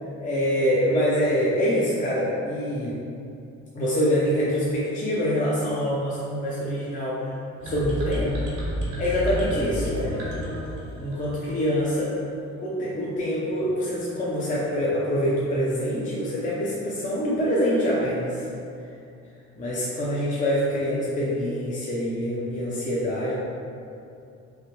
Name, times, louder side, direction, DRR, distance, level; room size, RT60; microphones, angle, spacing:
voice 1, 0.2-3.0 3.7-7.3 7.6-8.5 9.0-10.3 11.0-12.1 12.6-18.5 19.6-23.3, equal, 25° left, -7 dB, 0.5 m, -25 dB
sound 1, 7.6-11.5, equal, 85° right, 0.9 m, -30 dB
3.2 x 2.5 x 2.8 m, 2.6 s
cardioid pair, 90°, 30 cm